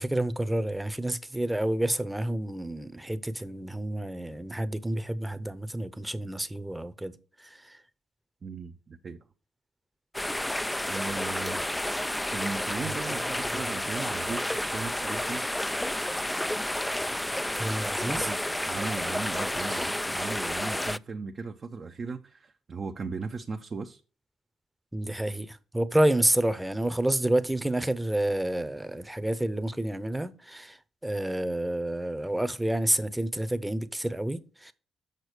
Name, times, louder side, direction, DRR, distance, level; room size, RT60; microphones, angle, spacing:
voice 1, 0.0-7.8 12.8-13.2 13.5-13.6 17.5-18.3 24.9-34.7, right 1 dB, 10° right, 0.8 m, -29 dB
voice 2, 8.4-9.2 10.9-11.7 12.3-15.4 17.8-18.4 18.7-24.0, right 4 dB, 45° right, 0.7 m, -37 dB
sound 1, 10.1-21.0, left 1 dB, 10° left, 0.3 m, -31 dB
6.6 x 6.1 x 5.0 m
hypercardioid pair, 45°, 0 cm